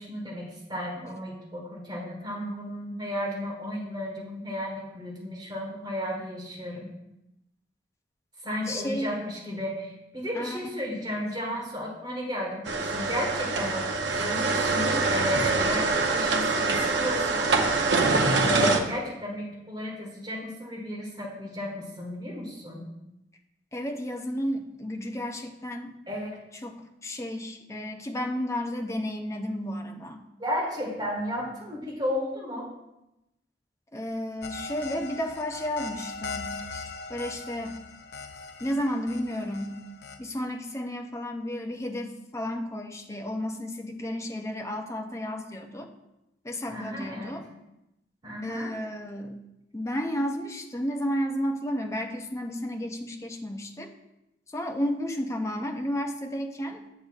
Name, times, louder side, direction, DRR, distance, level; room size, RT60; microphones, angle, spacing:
voice 1, 0.0-6.9 8.4-13.9 14.2-17.5 18.4-22.8 26.1-26.4 30.4-32.7 46.7-47.3 48.2-48.7, equal, 25° right, -3 dB, 1.5 m, -33 dB
voice 2, 8.7-9.2 10.4-11.0 23.7-25.9 26.6-30.3 33.9-36.8 37.1-37.8 38.6-39.8 40.2-45.9 46.4-47.5 48.4-49.4 49.7-53.9 54.5-56.8, equal, 15° left, 3 dB, 0.5 m, -32 dB
sound 1, 12.6-18.8, right 3 dB, 80° right, 0.7 m, -25 dB
sound 2, 34.4-40.2, left 3 dB, 70° left, 0.5 m, -40 dB
7.8 x 6.7 x 2.4 m, 0.92 s
head